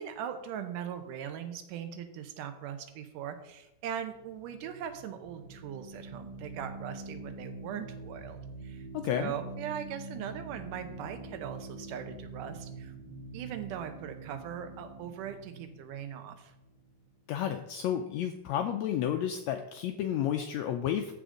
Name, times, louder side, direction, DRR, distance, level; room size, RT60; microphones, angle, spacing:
voice 1, 0.0-8.9 9.2-16.5, right 9 dB, 85° right, 8 dB, 2.4 m, -40 dB
sound 1, 4.0-17.2, right 3 dB, 55° right, 1.4 m, -45 dB
voice 2, 8.9-9.3 17.3-21.1, left 10 dB, 85° left, 6 dB, 1.5 m, -31 dB
14.5 x 5.0 x 3.8 m, 0.87 s
omnidirectional pair, 3.7 m